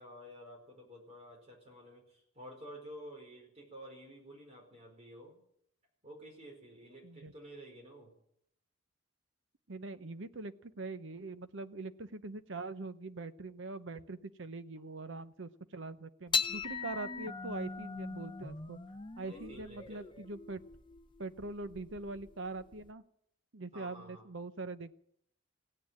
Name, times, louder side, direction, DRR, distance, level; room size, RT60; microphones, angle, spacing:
voice 1, 0.0-5.4 6.0-8.1 19.2-20.0 23.7-24.3, equal, 30° right, 0 dB, 4.9 m, -51 dB
voice 2, 9.7-18.8 19.2-20.6 21.2-23.0 23.5-24.9, right 3 dB, 65° right, 11 dB, 0.8 m, -43 dB
sound 1, 16.3-22.9, left 4 dB, 20° left, 0.7 m, -39 dB
16.5 x 9.7 x 8.9 m, 0.72 s
head